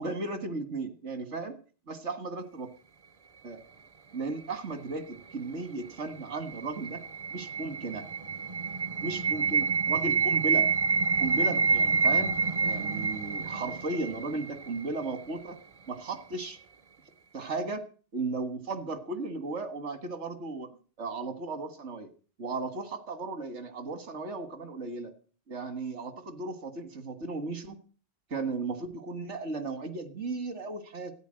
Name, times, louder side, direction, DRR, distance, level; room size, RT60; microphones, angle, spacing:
voice 1, 0.0-1.6 1.9-2.7 3.4-3.6 4.1-7.0 7.3-8.0 9.0-10.7 11.2-12.3 12.6-15.6 15.9-16.6 17.3-17.8 18.1-20.7 21.0-22.1 22.4-25.1 25.5-27.8 28.3-31.1, right 3 dB, 80° right, 11 dB, 2.0 m, -35 dB
sound 1, 6.1-15.1, right 5 dB, 35° right, 0.7 m, -28 dB
13.5 x 9.5 x 7.6 m, 0.40 s
omnidirectional pair, 1.2 m